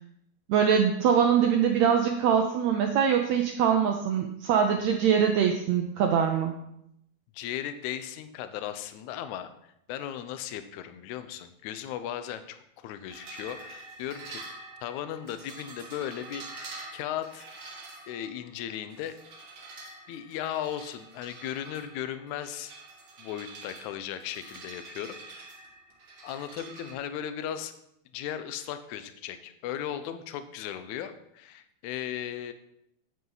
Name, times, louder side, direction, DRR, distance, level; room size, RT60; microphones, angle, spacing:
voice 1, 0.5-6.5, right 7 dB, 85° right, 4 dB, 1.5 m, -23 dB
voice 2, 7.3-9.5 9.9-14.4 14.8-16.6 16.9-17.5 18.1-19.2 20.1-22.7 23.2-25.6 26.2-27.7 28.1-32.5, left 10 dB, 75° left, 10 dB, 1.8 m, -36 dB
sound 1, 13.1-26.9, right 3 dB, 50° right, 2.1 m, -46 dB
9.2 x 8.5 x 4.0 m, 0.78 s
omnidirectional pair, 4.1 m